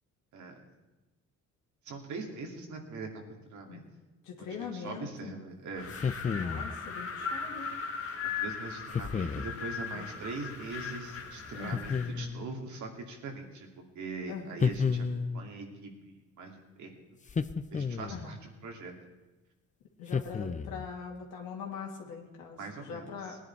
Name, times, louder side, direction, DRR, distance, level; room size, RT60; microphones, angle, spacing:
voice 1, 1.8-3.2 3.5-3.8 4.4-5.9 8.2-13.7 13.9-16.9 17.7-18.9 22.6-23.4, right 3 dB, 70° right, 2 dB, 2.7 m, -42 dB
voice 2, 4.2-5.4 6.3-7.8 9.9-10.1 11.6-12.0 14.3-14.7 18.1-18.3 20.0-23.4, left 6 dB, 85° left, -1 dB, 2.2 m, -42 dB
Wind, 5.7-12.2, left 5 dB, 50° left, 1.7 m, -38 dB
sound 1, 5.9-6.8 8.9-9.5 11.7-12.5 14.6-15.5 17.3-18.3 20.1-20.9, left 5 dB, 25° left, 0.6 m, -31 dB
19.0 x 10.0 x 4.6 m, 1.1 s
cardioid pair, 90°, 30 cm